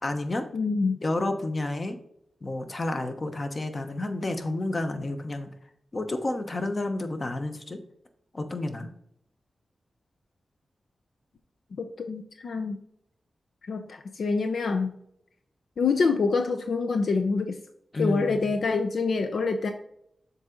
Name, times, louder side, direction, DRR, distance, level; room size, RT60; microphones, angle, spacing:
voice 1, 0.0-0.5 1.0-2.0 2.4-5.5 5.9-7.8 8.3-8.9 17.9-18.5, left 2 dB, 40° left, 7 dB, 1.0 m, -30 dB
voice 2, 0.5-1.0 11.8-12.8 13.6-15.0 15.8-17.6 18.0-19.7, left 4 dB, 80° left, 6 dB, 0.5 m, -26 dB
7.1 x 4.0 x 3.8 m, 0.73 s
cardioid pair, 65°, 0 cm